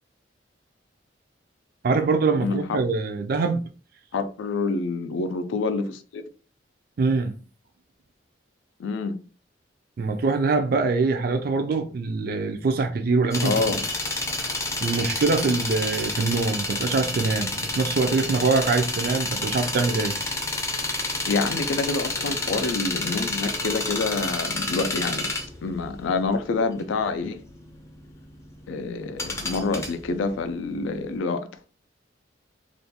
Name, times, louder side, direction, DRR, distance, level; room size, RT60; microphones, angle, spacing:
voice 1, 1.8-3.6 7.0-7.3 10.0-13.8 14.8-20.1, right 4 dB, 50° right, 0.3 m, -24 dB
voice 2, 2.4-2.8 4.1-6.2 8.8-9.2 13.4-13.8 21.3-25.3 25.6-27.4 28.7-31.5, left 3 dB, 85° left, 0.4 m, -27 dB
sound 1, 13.3-30.9 31.1-31.2, left 2 dB, 15° left, 0.4 m, -29 dB
2.4 x 2.2 x 2.7 m
head